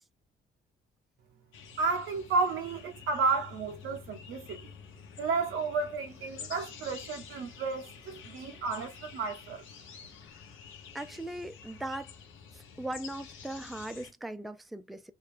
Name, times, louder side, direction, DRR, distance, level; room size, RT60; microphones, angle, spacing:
sound 1, 1.5-14.1, left 6 dB, 85° left, 0.9 m, -49 dB
voice 1, 1.8-4.7 5.2-9.6, right 4 dB, 90° right, 0.9 m, -32 dB
voice 2, 10.9-12.1 12.5-15.1, right 1 dB, ahead, 0.4 m, -39 dB
3.0 x 2.4 x 3.4 m
cardioid pair, 90°, 20 cm